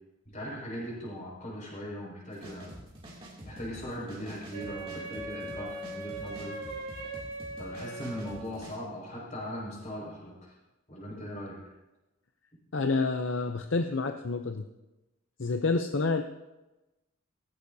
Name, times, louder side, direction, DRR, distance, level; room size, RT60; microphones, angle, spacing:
voice 1, 0.3-2.7 3.4-6.6 7.6-10.5 10.9-11.6, equal, 35° left, -3 dB, 5.7 m, -39 dB
sound 1, 2.3-8.8, equal, 25° right, 2.7 m, -47 dB
Wind instrument woodwind instrument, 4.5-8.6, right 2 dB, 80° right, 3.5 m, -40 dB
voice 2, 12.7-14.6 15.4-16.2, left 3 dB, 60° left, 6 dB, 0.6 m, -28 dB
16.5 x 15.5 x 2.8 m, 1.0 s
head